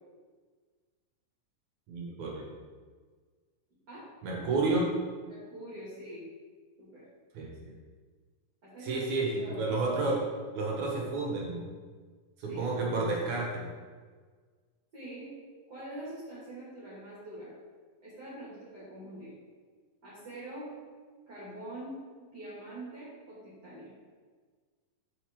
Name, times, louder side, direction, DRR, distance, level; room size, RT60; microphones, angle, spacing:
voice 1, 1.9-2.5 4.2-4.9 7.3-7.7 8.8-10.2 10.5-11.7 12.4-13.7, right 3 dB, 60° right, -2 dB, 2.5 m, -31 dB
voice 2, 5.3-6.3 6.8-7.0 8.6-9.9 12.5-12.7 14.9-15.3 15.7-17.5 18.0-19.3 20.0-20.7 21.3-23.9, right 1 dB, 30° right, -10 dB, 2.5 m, -44 dB
7.3 x 6.9 x 3.7 m, 1.5 s
omnidirectional pair, 4.0 m